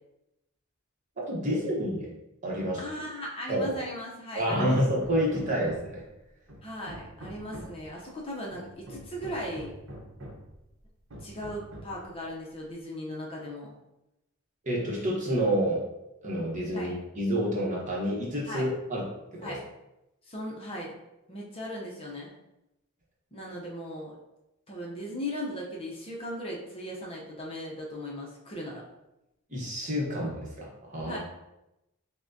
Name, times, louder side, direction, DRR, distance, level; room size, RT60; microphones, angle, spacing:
voice 1, 1.3-2.1 2.4-2.8 3.5-3.8 4.3-6.0 14.6-15.8 16.2-19.6 29.5-31.2, equal, 35° right, -4 dB, 1.0 m, -29 dB
voice 2, 2.8-4.8 6.6-9.7 11.2-13.7 16.7-16.9 18.5-18.6 19.4-19.6 20.2-20.9 21.3-22.3 23.3-24.2 24.7-28.8 31.1-31.2, left 1 dB, 25° left, -3 dB, 0.6 m, -38 dB
Hammer, 4.7-6.1 6.5-7.9 8.5-10.5 11.1-12.0, equal, 65° right, 0.8 m, -45 dB
5.8 x 2.1 x 2.6 m, 0.91 s
head